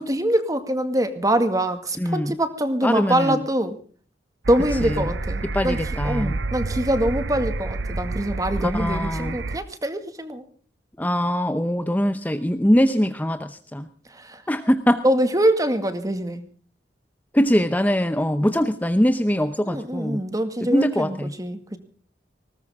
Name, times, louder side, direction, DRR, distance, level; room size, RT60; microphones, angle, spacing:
voice 1, 0.0-3.8 4.5-5.8 6.0-10.4 14.1-14.4 15.0-16.4 18.4-18.5 19.6-21.8, right 1 dB, 20° right, 9 dB, 2.0 m, -24 dB
voice 2, 2.0-2.3 2.8-3.4 4.8-5.1 5.5-6.4 8.6-9.4 11.0-13.9 14.5-15.0 17.3-20.2 20.6-21.3, equal, 10° left, 9 dB, 0.8 m, -22 dB
sound 1, 4.4-9.6, right 3 dB, 90° right, 0.8 m, -29 dB
20.0 x 19.0 x 3.7 m, 0.44 s
head